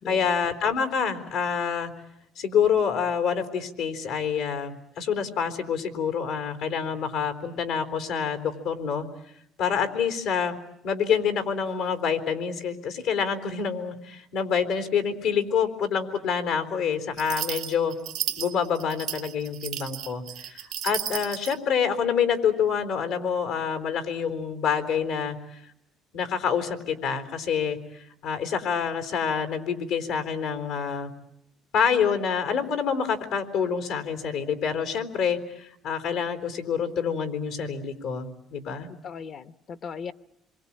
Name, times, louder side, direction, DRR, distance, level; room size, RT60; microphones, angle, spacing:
voice 1, 0.1-1.9 2.4-9.1 9.6-10.5 10.8-18.0 18.4-25.4 26.1-27.8 28.2-31.1 31.7-38.9, left 7 dB, 85° left, 7 dB, 3.9 m, -27 dB
sound 1, 17.2-21.6, right 10 dB, 80° right, 1.4 m, -33 dB
voice 2, 39.0-40.1, left 6 dB, 50° left, 12 dB, 1.0 m, -38 dB
27.0 x 23.5 x 8.8 m, 0.76 s
supercardioid pair, 75°, 0 cm